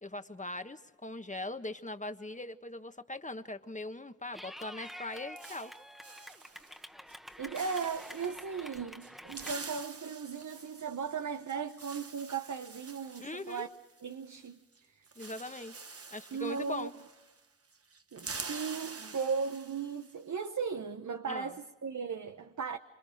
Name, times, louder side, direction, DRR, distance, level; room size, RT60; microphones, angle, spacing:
voice 1, 0.0-5.7 13.2-13.7 15.1-15.7 16.1-16.9 21.3-21.5, left 2 dB, 25° left, 1.4 m, -41 dB
Clapping / Cheering, 4.3-9.5, equal, ahead, 1.4 m, -48 dB
sound 1, 4.9-6.8 7.1-7.3 7.5-8.4 9.0-14.5 14.7-14.8 15.1-17.5 17.7-20.1, right 4 dB, 50° right, 1.2 m, -47 dB
voice 2, 7.4-13.7 14.0-15.1 16.3-16.9 18.1-22.8, right 6 dB, 65° right, 0.9 m, -37 dB
27.0 x 27.0 x 5.1 m
cardioid pair, 50°, 31 cm